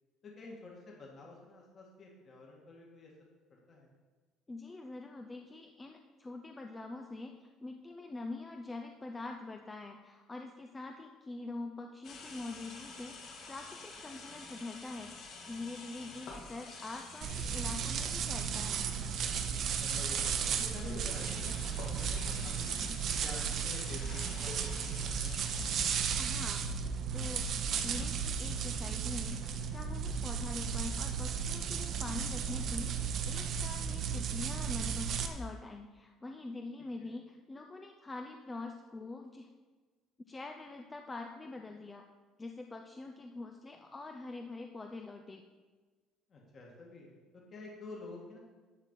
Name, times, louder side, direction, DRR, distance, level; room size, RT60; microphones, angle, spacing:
voice 1, 0.2-3.9 16.0-16.4 19.6-22.7 23.2-25.6 37.0-37.1 46.3-48.4, left 3 dB, 30° left, -2 dB, 1.8 m, -50 dB
voice 2, 4.5-18.9 26.2-26.6 26.9-27.4 27.8-39.5 40.3-42.0 42.4-45.4, left 3 dB, 15° left, 4 dB, 0.5 m, -44 dB
sound 1, 12.0-26.2, left 3 dB, 50° left, 2.2 m, -49 dB
sound 2, 17.2-35.3, right 7 dB, 45° right, 0.9 m, -34 dB
12.0 x 4.3 x 8.1 m, 1.3 s
cardioid pair, 160°, 0 cm